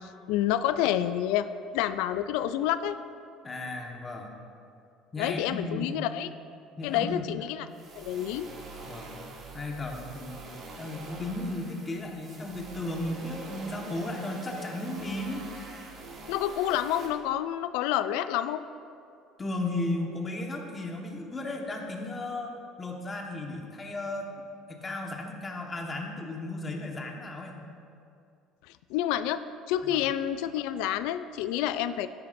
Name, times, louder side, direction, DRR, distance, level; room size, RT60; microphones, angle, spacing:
voice 1, 0.0-1.5 1.7-3.0 5.2-6.3 6.8-7.7 8.0-8.5 16.3-18.6 28.9-29.4 29.7-32.1, left 11 dB, 85° left, 12 dB, 0.3 m, -28 dB
voice 2, 3.4-4.3 5.1-6.0 6.8-7.3 8.9-9.3 9.5-15.4 19.4-27.6 29.8-30.1, left 2 dB, 20° left, 1 dB, 1.3 m, -35 dB
sound 1, 7.7-17.1, right 3 dB, 45° right, 2.3 m, -44 dB
13.0 x 11.0 x 2.6 m, 2.5 s
cardioid pair, 125°, 0 cm